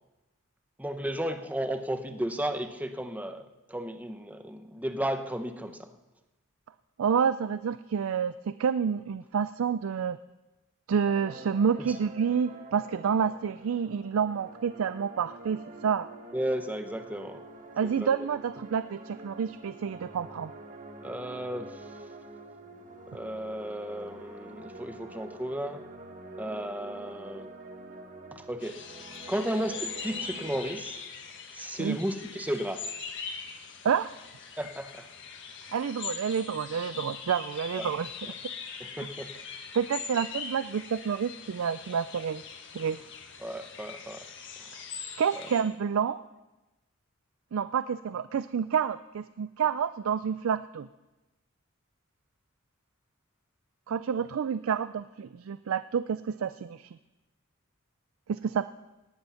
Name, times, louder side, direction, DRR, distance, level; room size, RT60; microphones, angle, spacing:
voice 1, 0.8-5.9 11.8-11.9 16.3-17.4 17.8-18.1 21.0-21.8 23.1-25.8 26.4-27.5 28.3-28.8 29.3-31.0 31.5-32.8 34.6-35.1 37.7-37.9 38.2-38.3 38.8-39.3 43.4-44.2, right 1 dB, 10° right, 7 dB, 0.9 m, -34 dB
voice 2, 7.0-10.2 10.9-16.1 17.8-20.5 31.8-32.0 33.8-34.1 35.7-38.1 39.7-42.4 42.7-43.0 45.2-46.2 47.5-50.9 53.9-56.9 58.3-58.7, right 7 dB, 70° right, 13 dB, 0.4 m, -29 dB
sound 1, 11.0-30.7, right 2 dB, 40° right, 1.5 m, -47 dB
sound 2, 28.6-45.6, left 6 dB, 60° left, 1.5 m, -42 dB
18.0 x 9.6 x 5.7 m, 1.1 s
head